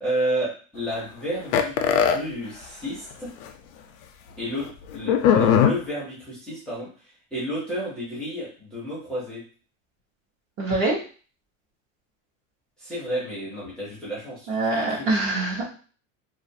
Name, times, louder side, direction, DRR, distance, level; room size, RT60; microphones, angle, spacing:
voice 1, 0.0-3.3 4.4-4.7 4.9-6.9 7.3-9.4 12.8-15.2, right 1 dB, ahead, -9 dB, 0.7 m, -31 dB
sound 1, 1.5-2.2 3.1-3.2 3.5-3.6 5.1-5.7, left 8 dB, 80° left, 0.5 m, -18 dB
voice 2, 10.6-11.0 14.5-15.7, right 2 dB, 35° right, -3 dB, 0.8 m, -24 dB
2.4 x 2.3 x 2.6 m, 0.39 s
supercardioid pair, 155°, 41 cm